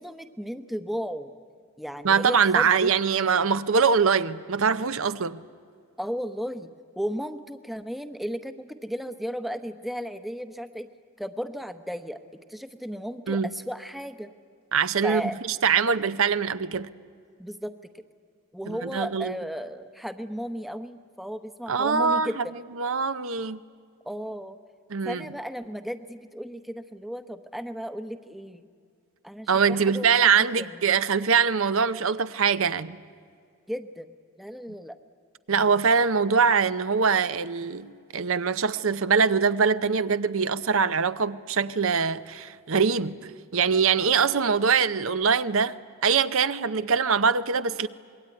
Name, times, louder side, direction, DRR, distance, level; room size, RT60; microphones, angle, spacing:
voice 1, 0.0-1.3 1.8-2.9 6.0-10.9 11.2-12.2 12.5-14.3 15.0-15.4 17.4-18.0 18.5-22.5 24.0-24.6 25.0-28.7 29.2-30.8 33.7-34.1 34.4-35.0, equal, ahead, 0.8 m, -35 dB
voice 2, 2.0-5.4 13.3-13.5 14.7-15.2 15.6-16.9 18.7-19.3 21.7-22.4 22.8-23.6 24.9-25.2 29.5-33.0 35.5-45.8 46.0-47.9, right 6 dB, 65° right, 0.7 m, -23 dB
26.0 x 22.0 x 9.8 m
head